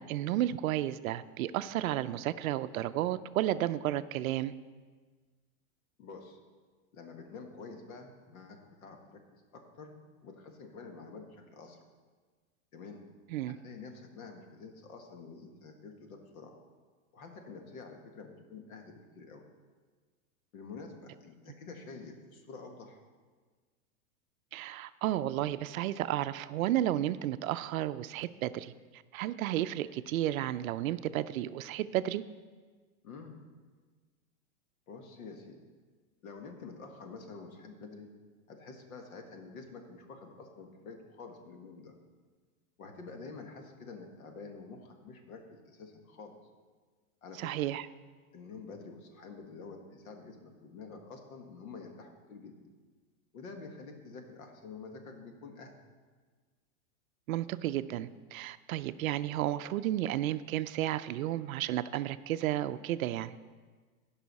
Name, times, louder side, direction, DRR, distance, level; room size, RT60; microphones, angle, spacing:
voice 1, 0.0-4.5 13.3-13.6 24.5-32.2 47.4-47.9 57.3-63.4, right 13 dB, 70° right, 14 dB, 0.5 m, -32 dB
voice 2, 6.0-6.4 6.9-9.2 9.5-9.9 10.2-11.8 12.7-13.0 13.5-16.6 17.1-19.4 20.5-23.0 33.0-33.4 34.9-35.6 36.2-38.1 38.5-41.9 42.8-46.4 47.2-47.6 48.3-52.6 53.3-55.7, left 4 dB, 70° left, 4 dB, 1.7 m, -48 dB
16.0 x 5.6 x 4.1 m, 1.4 s
supercardioid pair, 155°, 43 cm